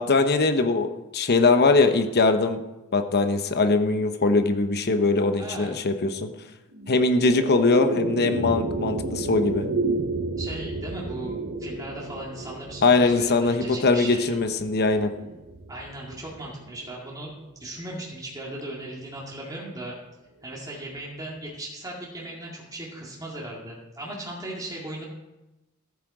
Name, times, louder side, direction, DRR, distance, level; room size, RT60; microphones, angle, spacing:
voice 1, 0.0-2.6 2.9-6.3 6.9-9.6 12.8-15.1, left 3 dB, 45° left, 8 dB, 0.9 m, -21 dB
voice 2, 5.4-5.8 10.4-14.3 15.7-20.0 20.4-25.0, right 1 dB, 15° right, -4 dB, 2.2 m, -37 dB
sound 1, 6.7-17.2, right 2 dB, 45° right, 0.8 m, -32 dB
14.5 x 8.4 x 4.9 m, 1.0 s
head